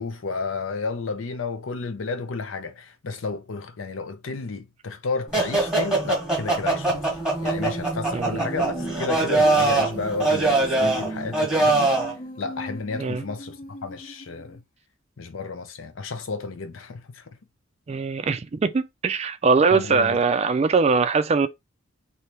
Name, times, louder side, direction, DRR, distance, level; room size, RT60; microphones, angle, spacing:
voice 1, 0.0-11.9 12.4-14.6 15.2-17.4 19.7-20.2, left 4 dB, 75° left, 0.6 m, -32 dB
sound 1, 5.3-12.1, right 2 dB, 5° right, 1.1 m, -23 dB
Female singing, 6.9-14.6, equal, 45° left, 0.8 m, -41 dB
voice 2, 17.9-21.5, right 4 dB, 35° right, 0.4 m, -21 dB
3.3 x 2.7 x 2.9 m
head